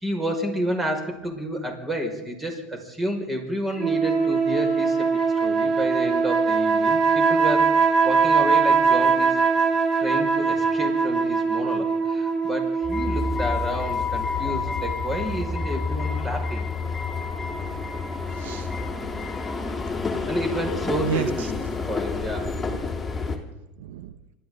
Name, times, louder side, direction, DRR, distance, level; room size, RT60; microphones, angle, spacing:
voice 1, 0.0-5.1 5.4-9.4 10.0-16.6 20.3-22.5, equal, 15° right, 3 dB, 5.6 m, -30 dB
sound 1, 3.8-13.5, right 5 dB, 35° right, 2.5 m, -21 dB
sound 2, 12.8-23.4, left 4 dB, 15° left, 3.4 m, -29 dB
voice 2, 17.5-17.9 18.4-18.7 21.0-21.5 22.4-22.9 23.8-24.1, right 8 dB, 80° right, 12 dB, 0.9 m, -33 dB
28.0 x 13.0 x 4.0 m, 0.98 s
hypercardioid pair, 95°, 0 cm